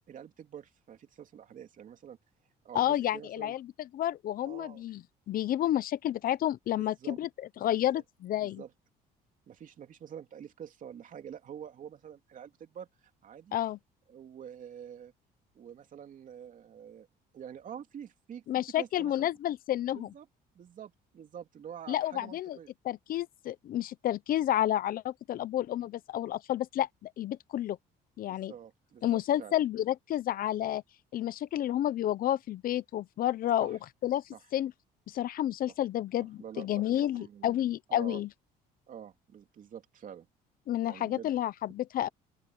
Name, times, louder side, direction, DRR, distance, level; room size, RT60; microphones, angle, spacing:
voice 1, 0.1-2.2 2.6-3.5 4.4-4.8 6.7-7.2 7.7-8.0 8.4-8.7 9.5-12.9 13.2-13.5 14.1-15.1 15.5-17.1 17.3-18.5 18.7-19.3 19.9-20.3 20.5-22.7 28.2-29.6 33.6-33.8 34.3-34.4 35.7-35.8 36.4-37.6 37.9-38.2 38.9-40.3 40.8-41.3, right 8 dB, 50° right, 3.0 m, -47 dB
voice 2, 2.7-3.7 3.9-5.0 5.3-7.3 7.6-8.6 13.5-13.8 18.5-20.1 21.9-22.6 22.8-27.8 28.2-28.5 29.0-30.8 31.1-34.2 34.5-34.7 35.1-38.3 40.7-42.1, left 12 dB, 60° left, 0.7 m, -30 dB
open air
cardioid pair, 110°, 17 cm